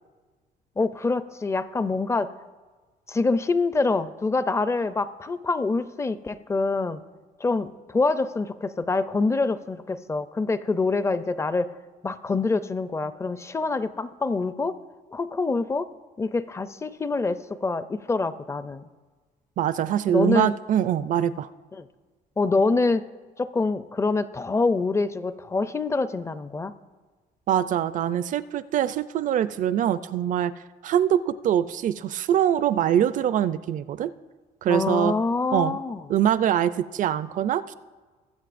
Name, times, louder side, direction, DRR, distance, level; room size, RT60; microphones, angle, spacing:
voice 1, 0.8-2.3 3.1-7.0 7.4-11.7 12.0-14.8 15.1-15.9 16.2-18.9 20.1-20.5 21.8-21.9 22.4-23.0 23.4-26.7 34.7-36.0, left 3 dB, 15° left, 13 dB, 0.4 m, -25 dB
voice 2, 19.6-21.5 27.5-30.5 30.8-34.1 34.6-35.1 35.5-35.8 36.1-37.7, right 10 dB, 50° right, 15 dB, 0.4 m, -23 dB
20.5 x 7.6 x 2.5 m, 1.3 s
cardioid pair, 110°, 17 cm